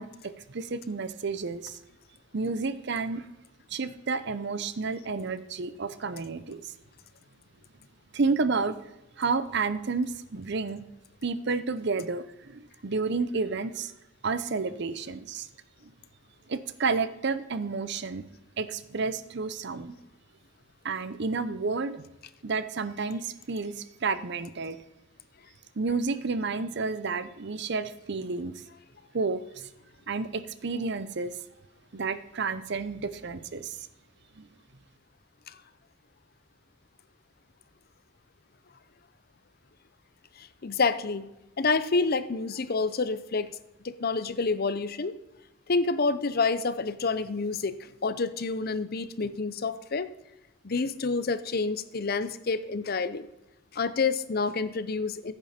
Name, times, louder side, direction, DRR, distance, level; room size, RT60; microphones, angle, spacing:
voice 1, 0.0-1.8 2.3-3.2 3.7-6.7 8.1-8.8 9.2-10.8 11.2-13.9 14.2-15.5 15.8-15.9 16.5-18.2 18.6-20.0 20.8-22.0 22.4-24.8 25.8-28.5 29.1-29.7 30.1-31.4 31.9-33.9 34.4-34.5, right 4 dB, 55° right, 13 dB, 0.7 m, -31 dB
voice 2, 40.4-41.3 41.6-43.5 43.8-45.1 45.7-47.7 48.0-50.1 50.6-53.3 53.7-55.3, left 4 dB, 50° left, 14 dB, 0.6 m, -28 dB
15.5 x 8.9 x 4.3 m, 0.94 s
head